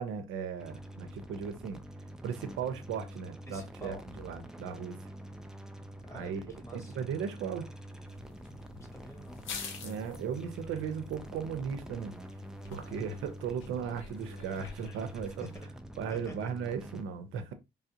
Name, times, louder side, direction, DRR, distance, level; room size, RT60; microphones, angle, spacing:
voice 1, 0.0-1.8 2.2-5.0 6.1-6.4 6.7-7.7 9.8-12.1 12.7-15.5 16.0-17.5, right 7 dB, 85° right, 0.6 m, -37 dB
sound 1, 0.6-17.0, right 1 dB, 5° right, 0.4 m, -46 dB
voice 2, 3.5-4.0 6.0-7.0 8.8-9.4 10.1-10.2 12.9-13.2 15.4-15.5 16.1-16.5, left 1 dB, 15° left, 1.2 m, -48 dB
sound 2, 8.1-15.6, left 5 dB, 80° left, 0.8 m, -48 dB
3.3 x 2.4 x 2.7 m
cardioid pair, 90°, 20 cm